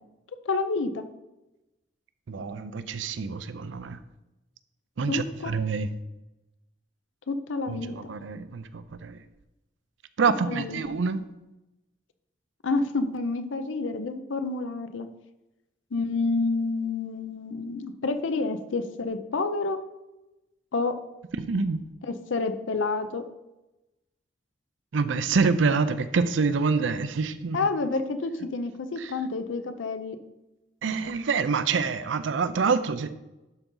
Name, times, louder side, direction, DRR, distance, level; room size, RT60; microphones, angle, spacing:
voice 1, 0.5-1.0 5.1-5.5 7.3-8.1 10.5-11.0 12.6-15.1 15.9-19.8 20.7-20.9 22.1-23.2 27.5-30.2, left 3 dB, 85° left, 9 dB, 0.6 m, -29 dB
voice 2, 2.3-4.0 5.0-5.9 7.7-9.2 10.2-11.2 21.4-21.8 24.9-27.7 29.0-29.1 30.8-33.1, right 5 dB, 75° right, 13 dB, 0.5 m, -26 dB
11.5 x 4.0 x 3.8 m, 0.99 s
head